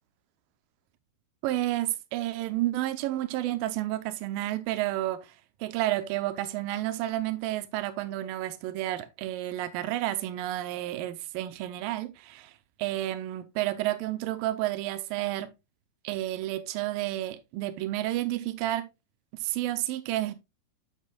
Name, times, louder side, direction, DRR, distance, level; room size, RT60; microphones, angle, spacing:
voice 1, 1.4-5.3 5.6-12.5 12.8-15.5 16.0-18.9 19.3-20.3, right 15 dB, 80° right, 2.2 m, -31 dB
8.5 x 7.4 x 2.3 m
omnidirectional pair, 4.5 m